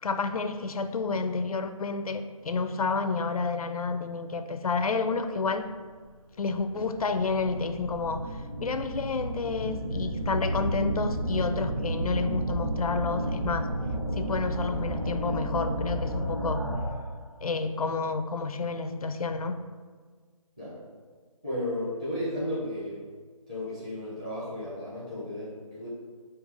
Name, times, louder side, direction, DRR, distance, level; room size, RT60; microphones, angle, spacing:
voice 1, 0.0-5.7 6.4-13.7 14.2-16.7 17.4-19.6, left 4 dB, 85° left, 10 dB, 0.4 m, -30 dB
sound 1, 5.7-5.8 6.5-17.1, right 1 dB, 40° right, 0.8 m, -32 dB
voice 2, 21.4-23.0 23.5-25.9, left 1 dB, 10° right, -10 dB, 0.7 m, -34 dB
5.3 x 2.7 x 3.7 m, 1.5 s
figure-of-eight pair, 170°, 18 cm